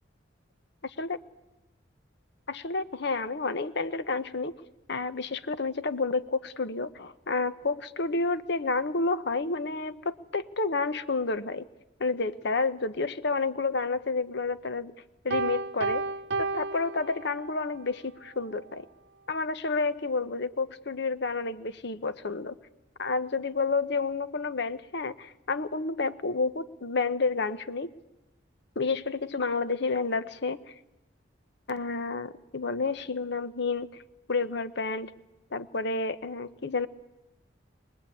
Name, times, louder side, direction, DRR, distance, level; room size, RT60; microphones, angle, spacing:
voice 1, 0.8-1.2 2.5-4.5 4.9-11.6 12.0-14.9 15.2-16.1 16.4-18.9 19.3-22.5 23.0-27.9 28.8-30.7 31.7-34.0 34.3-35.1 35.5-36.9, left 3 dB, 65° left, 13 dB, 1.0 m, -30 dB
Piano, 15.3-17.7, right 3 dB, 65° right, 0.8 m, -32 dB
23.0 x 21.0 x 8.5 m, 0.93 s
head